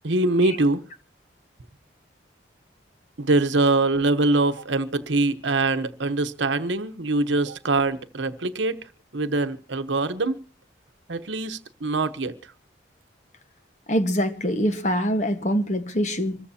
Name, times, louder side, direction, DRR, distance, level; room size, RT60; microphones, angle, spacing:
voice 1, 0.0-0.8 3.2-8.8 9.1-10.4 11.1-12.3, right 2 dB, 80° right, 1.0 m, -23 dB
voice 2, 13.9-16.4, equal, 40° left, 1.3 m, -24 dB
26.0 x 14.5 x 2.8 m
head